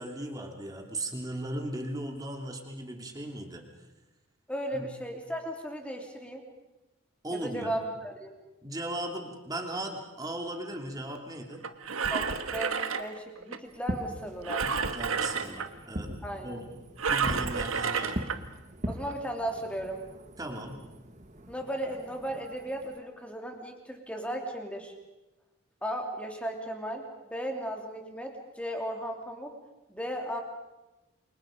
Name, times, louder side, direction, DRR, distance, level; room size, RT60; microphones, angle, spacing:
voice 1, 0.0-3.6 4.7-4.9 7.2-7.8 8.6-11.6 14.6-16.8 17.1-18.2 20.4-20.8, right 1 dB, 15° right, 3 dB, 2.8 m, -37 dB
voice 2, 4.5-6.5 7.4-8.3 12.1-14.6 16.2-16.7 18.9-20.0 21.5-24.9 25.8-29.6 29.9-30.4, right 1 dB, 5° left, 3 dB, 3.0 m, -36 dB
Engine, 11.6-13.6 14.4-15.7 17.0-18.4 19.0-19.1, right 5 dB, 75° right, 1.4 m, -30 dB
Fireworks, 13.7-23.0, equal, 35° right, 1.6 m, -41 dB
28.5 x 24.5 x 5.2 m, 1.0 s
head